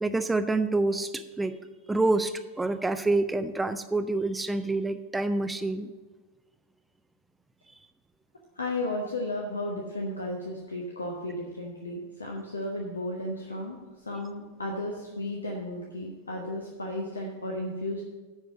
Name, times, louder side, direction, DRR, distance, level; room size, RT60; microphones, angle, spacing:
voice 1, 0.0-1.6 1.9-5.9, right 2 dB, 10° right, 10 dB, 0.4 m, -27 dB
voice 2, 8.6-18.0, left 1 dB, 75° left, 0 dB, 1.0 m, -34 dB
10.0 x 4.5 x 7.4 m, 1.3 s
figure-of-eight pair, 90°, 0 cm